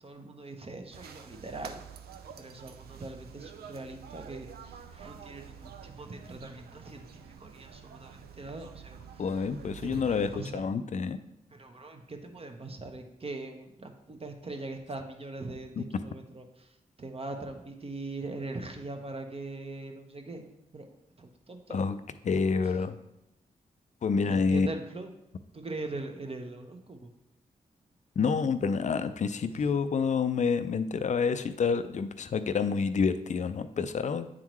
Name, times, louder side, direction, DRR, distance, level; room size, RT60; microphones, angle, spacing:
voice 1, 0.0-1.8 2.4-9.2 9.6-10.6 11.5-20.5 20.7-21.8 22.6-22.7 24.3-25.1 25.5-27.1, right 2 dB, 40° right, 4 dB, 1.0 m, -41 dB
sound 1, 0.9-10.5, right 8 dB, 80° right, 0.4 m, -48 dB
voice 2, 9.2-11.2 15.8-15.9 21.7-23.0 24.0-24.7 28.2-34.3, left 5 dB, 50° left, 11 dB, 0.4 m, -28 dB
8.9 x 3.7 x 3.1 m, 0.86 s
supercardioid pair, 40°, 16 cm